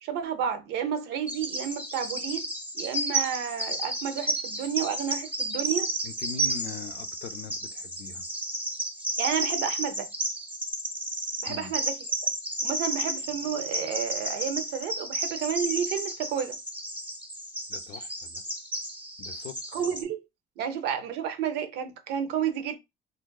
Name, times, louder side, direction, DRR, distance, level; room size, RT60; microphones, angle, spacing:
voice 1, 0.0-2.5 2.7-5.9 9.2-10.1 11.4-12.0 12.6-16.6 19.7-20.2 20.6-22.8, right 8 dB, 80° right, 0.6 m, -31 dB
Bird vocalization bird call bird song, 1.3-20.0, right 1 dB, 10° right, 0.6 m, -32 dB
voice 2, 6.0-8.3 11.5-11.8 17.7-18.4 19.2-19.6, left 7 dB, 65° left, 0.5 m, -41 dB
3.8 x 2.3 x 2.2 m
cardioid pair, 110°, 17 cm